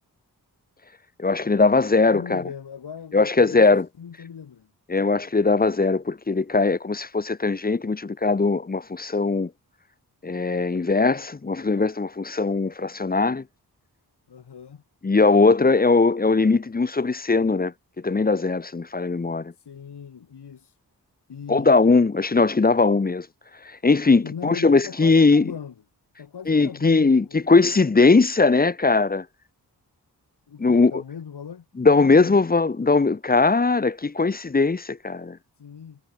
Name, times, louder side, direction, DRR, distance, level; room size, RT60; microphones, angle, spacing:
voice 1, 1.2-2.4 3.1-3.9 4.9-9.5 10.2-13.4 15.0-19.5 21.5-23.3 23.6-25.5 26.5-29.3 30.6-30.9 31.8-35.4, left 3 dB, 25° left, 0.7 m, -20 dB
voice 2, 2.1-3.7 4.0-4.7 14.3-14.8 19.6-20.8 21.3-21.9 24.2-25.7 26.2-27.5 30.5-32.4 35.6-36.0, left 7 dB, 85° left, 6.6 m, -39 dB
cardioid pair, 50°, 39 cm